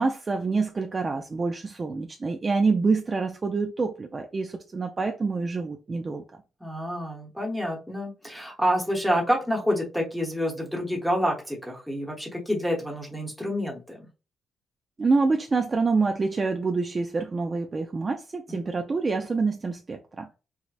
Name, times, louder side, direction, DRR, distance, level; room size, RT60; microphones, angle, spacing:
voice 1, 0.0-6.2 15.0-20.3, right 4 dB, 25° right, 0.3 m, -26 dB
voice 2, 6.6-14.1 18.5-18.6, equal, ahead, 0.9 m, -28 dB
4.6 x 2.1 x 2.4 m
cardioid pair, 150°, 0 cm